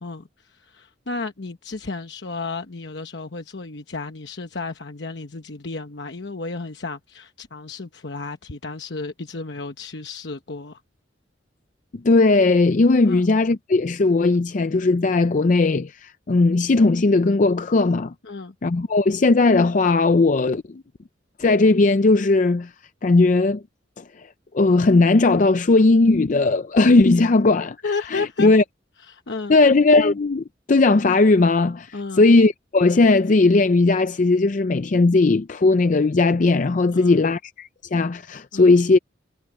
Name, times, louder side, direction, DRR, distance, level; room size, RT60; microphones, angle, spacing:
voice 1, 0.0-10.8 13.0-13.3 18.2-18.5 27.8-28.5 29.0-29.5 31.9-32.3 36.9-37.3 38.5-38.8, left 3 dB, 65° left, 1.1 m, -33 dB
voice 2, 11.9-18.1 18.6-20.8 21.4-22.7 23.0-23.6 24.0-24.3 24.5-28.6 29.5-39.0, left 3 dB, 45° left, 0.5 m, -18 dB
head